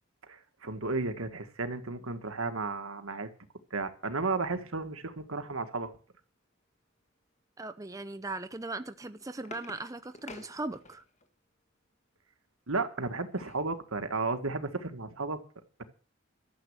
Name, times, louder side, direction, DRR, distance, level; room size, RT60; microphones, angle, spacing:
voice 1, 0.3-3.3 3.7-5.9 12.7-15.4, right 3 dB, 85° right, 1.8 m, -33 dB
voice 2, 7.6-11.0, right 2 dB, 15° right, 0.6 m, -39 dB
plastic lid opening, 8.9-11.3 12.8-13.7 14.2-14.3 14.6-14.8, left 3 dB, 35° left, 1.7 m, -50 dB
13.0 x 7.9 x 8.1 m
head